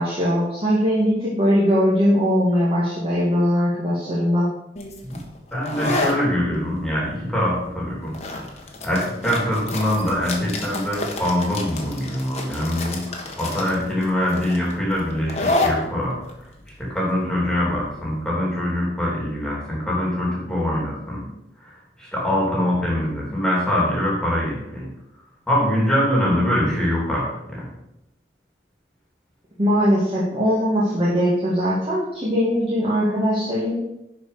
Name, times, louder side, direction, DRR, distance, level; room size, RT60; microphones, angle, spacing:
voice 1, 0.0-4.5 29.6-33.7, equal, 30° right, -8 dB, 2.2 m, -20 dB
sound 1, 4.8-18.2, left 2 dB, 40° left, 1.4 m, -30 dB
voice 2, 5.5-8.2 8.8-16.2 16.8-21.2 21.6-21.7 22.0-24.9 25.5-27.7, left 1 dB, 5° left, -5 dB, 2.7 m, -23 dB
11.0 x 4.9 x 5.1 m, 0.86 s
head